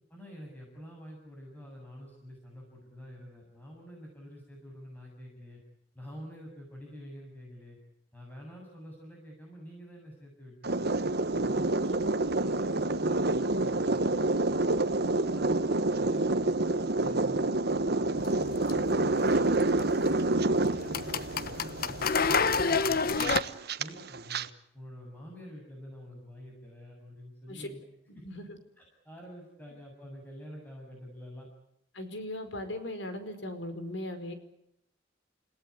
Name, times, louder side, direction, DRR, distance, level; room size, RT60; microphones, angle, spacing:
voice 1, 0.1-5.6 5.9-7.8 8.1-11.0 11.3-14.2 14.7-16.5 17.0-18.4 19.8-23.3 23.8-24.5 24.7-27.8 28.1-28.2 28.8-31.5, equal, 10° left, -2 dB, 7.4 m, -48 dB
sound 1, 10.6-24.5, right 2 dB, 60° right, 1.2 m, -28 dB
sound 2, 18.2-23.4, left 5 dB, 55° left, 1.1 m, -30 dB
voice 2, 28.2-28.6 31.9-34.3, left 1 dB, 80° left, 9 dB, 4.9 m, -38 dB
30.0 x 17.5 x 9.7 m, 0.76 s
head